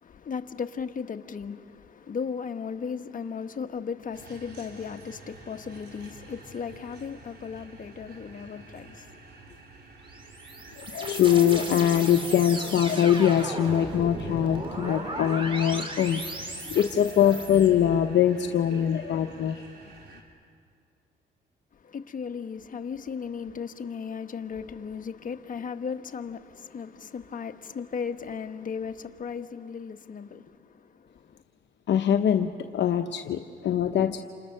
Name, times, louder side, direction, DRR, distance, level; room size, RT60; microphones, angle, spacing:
voice 1, 0.0-9.6 21.8-31.4, left 6 dB, 45° left, 1.3 m, -36 dB
sound 1, 4.1-20.2, right 3 dB, 55° right, 4.0 m, -49 dB
sound 2, 10.1-17.7, right 1 dB, 25° right, 4.0 m, -36 dB
voice 2, 10.8-16.2 16.7-19.6 31.9-34.2, left 9 dB, 65° left, 0.9 m, -23 dB
29.0 x 28.0 x 6.7 m
cardioid pair, 90°, 20 cm